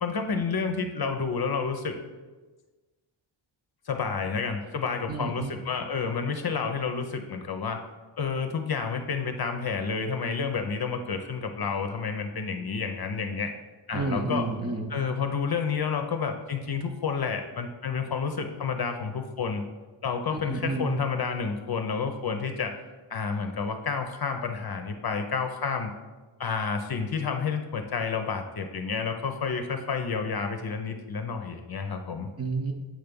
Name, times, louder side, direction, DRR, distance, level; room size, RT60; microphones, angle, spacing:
voice 1, 0.0-1.9 3.9-7.8 8.2-13.5 13.9-14.5 14.9-19.6 20.0-22.7 23.1-25.9 26.4-32.3, left 5 dB, 50° left, 5 dB, 0.7 m, -30 dB
voice 2, 5.1-5.5 13.9-14.9 20.3-20.9 32.4-32.7, right 3 dB, 30° right, 3 dB, 0.8 m, -30 dB
7.5 x 3.4 x 5.3 m, 1.3 s
wide cardioid pair, 80°, 48 cm